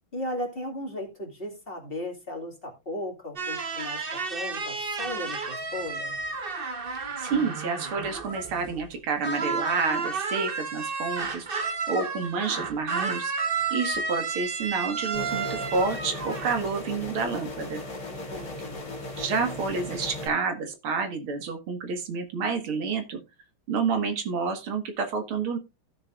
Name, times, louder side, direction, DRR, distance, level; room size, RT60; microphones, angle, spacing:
voice 1, 0.1-4.0 4.3-6.2 18.1-18.9, left 1 dB, 25° left, 1 dB, 2.4 m, -36 dB
sound 1, 3.4-8.9 9.2-16.6, right 4 dB, 35° right, 1.1 m, -32 dB
voice 2, 7.2-11.5 11.9-13.3 13.7-17.8 19.2-23.2 23.7-25.6, right 5 dB, 85° right, 7 dB, 2.5 m, -29 dB
sound 2, 15.1-20.3, left 2 dB, 50° left, 3.3 m, -37 dB
15.5 x 6.6 x 2.4 m, 0.26 s
omnidirectional pair, 2.3 m